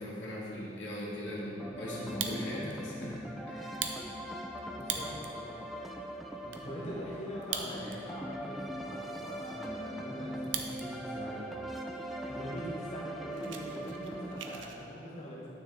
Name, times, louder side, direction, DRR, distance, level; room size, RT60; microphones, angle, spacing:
voice 1, 0.0-3.2 3.5-3.9, left 1 dB, 75° left, -5 dB, 1.7 m, -39 dB
sound 1, 1.6-14.6, right 1 dB, ahead, 0.4 m, -41 dB
Fire, 2.0-2.8 3.2-3.3 3.7-5.4 5.9-6.0 6.2-6.6 7.3-8.2 8.5-8.6 9.1-10.9 11.2-11.6 12.2-12.3 12.6-12.7 13.0-14.8, right 7 dB, 85° right, 0.6 m, -40 dB
voice 2, 4.7-5.5 6.4-11.5 12.0-15.5, equal, 40° left, -6 dB, 1.2 m, -43 dB
9.4 x 6.3 x 3.4 m, 3.0 s
head